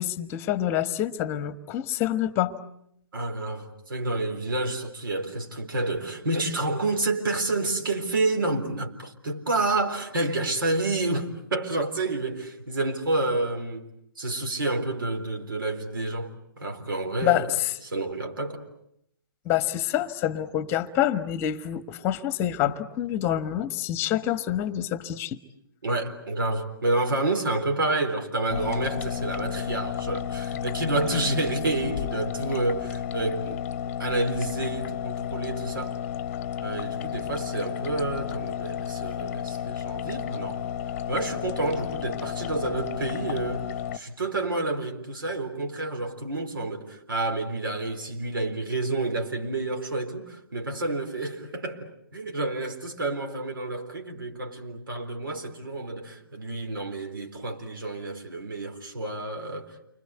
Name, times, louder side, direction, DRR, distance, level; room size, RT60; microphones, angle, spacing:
voice 1, 0.0-2.6 17.2-17.7 19.4-25.4, left 12 dB, 20° left, 1.3 m, -27 dB
voice 2, 3.1-13.9 14.2-17.6 17.8-18.6 25.8-33.6 34.0-36.0 36.6-40.6 41.1-59.9, right 2 dB, 65° right, 4.0 m, -29 dB
sound 1, 28.5-44.0, left 9 dB, 35° left, 1.0 m, -32 dB
29.5 x 25.0 x 8.2 m
figure-of-eight pair, 130°, 12 cm